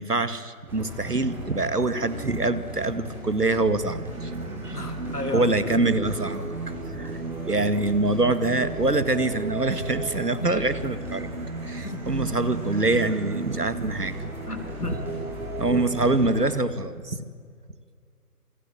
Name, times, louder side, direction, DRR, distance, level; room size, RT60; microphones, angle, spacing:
voice 1, 0.0-4.3 4.6-4.8 5.3-11.3 11.6-14.1 14.8-15.0 15.6-17.2, right 2 dB, 85° right, 13 dB, 2.2 m, -25 dB
sound 1, 0.7-16.6, equal, 5° right, 3.2 m, -39 dB
Singing, 3.8-16.4, right 4 dB, 60° right, 1.9 m, -35 dB
voice 2, 4.7-5.9 10.4-10.6 11.8-12.1 14.5-15.1, left 2 dB, 80° left, 6 dB, 5.5 m, -34 dB
28.0 x 22.5 x 9.0 m, 2.1 s
figure-of-eight pair, 155°, 46 cm